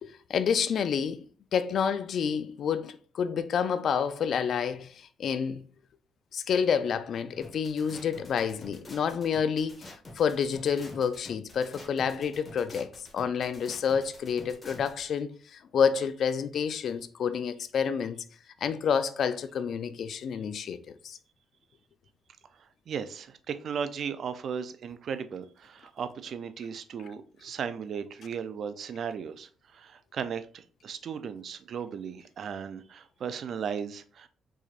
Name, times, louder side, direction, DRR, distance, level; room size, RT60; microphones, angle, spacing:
voice 1, 0.0-1.2 1.5-5.6 6.3-18.2 18.6-20.8 21.0-21.2, left 7 dB, 60° left, 0.4 m, -29 dB
sound 1, 7.4-15.0, left 2 dB, 25° left, 1.5 m, -47 dB
voice 2, 22.9-34.3, right 7 dB, 60° right, 0.5 m, -36 dB
4.8 x 4.1 x 2.5 m
cardioid pair, 90°, 0 cm